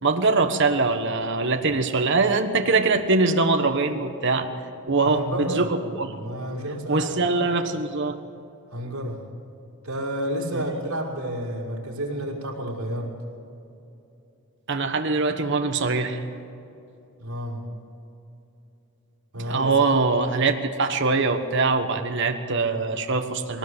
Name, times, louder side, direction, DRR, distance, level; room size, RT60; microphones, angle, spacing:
voice 1, 0.0-4.5 4.9-6.1 6.9-8.2 10.5-10.6 14.7-16.2 19.4-23.6, right 3 dB, 55° right, 6 dB, 1.3 m, -23 dB
voice 2, 5.0-7.5 8.7-9.2 9.8-13.1 17.2-17.6 19.3-19.7, right 1 dB, 80° right, -2 dB, 5.2 m, -31 dB
21.5 x 18.5 x 8.1 m, 2.8 s
head